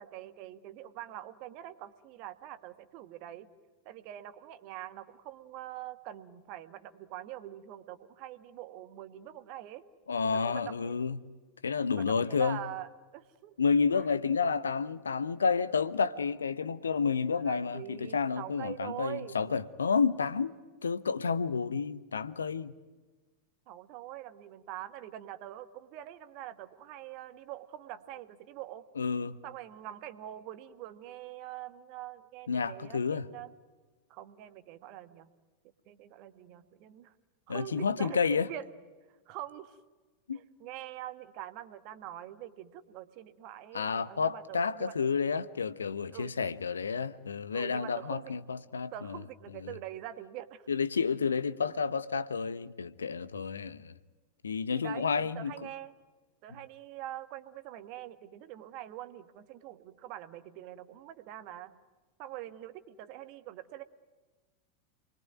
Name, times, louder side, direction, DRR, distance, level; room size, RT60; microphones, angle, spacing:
voice 1, 0.0-3.5 3.8-9.8 10.3-10.9 11.9-13.6 13.9-14.1 17.3-19.4 23.7-28.8 29.4-33.5 34.1-35.3 35.9-37.1 37.5-38.6 39.3-39.8 40.3-44.9 46.1-46.3 47.5-48.3 48.9-50.7 53.3-53.5 54.7-55.9 56.4-61.8 62.2-63.8, right 13 dB, 45° right, 1.6 m, -44 dB
voice 2, 10.1-11.2 11.6-12.6 13.6-20.5 20.8-22.7 29.0-29.4 32.5-33.3 37.5-38.5 40.3-40.4 43.7-49.2 49.6-49.7 50.7-53.9 54.4-55.5, left 5 dB, 70° left, 1.0 m, -30 dB
28.5 x 22.0 x 9.5 m
figure-of-eight pair, 90°, 0 cm